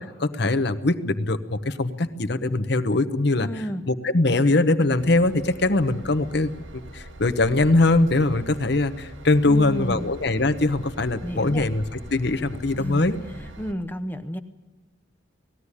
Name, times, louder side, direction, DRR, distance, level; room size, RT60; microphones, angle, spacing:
voice 1, 0.2-3.5 3.9-6.5 6.9-11.8 12.1-13.2, left 2 dB, 55° left, 9 dB, 1.0 m, -22 dB
voice 2, 3.4-3.8 9.5-10.1 11.2-11.7 12.7-13.1 13.4-14.4, equal, 10° left, 9 dB, 0.7 m, -32 dB
Train / Engine, 5.0-13.7, right 1 dB, 75° right, 1.2 m, -42 dB
19.5 x 15.0 x 9.8 m, 1.3 s
head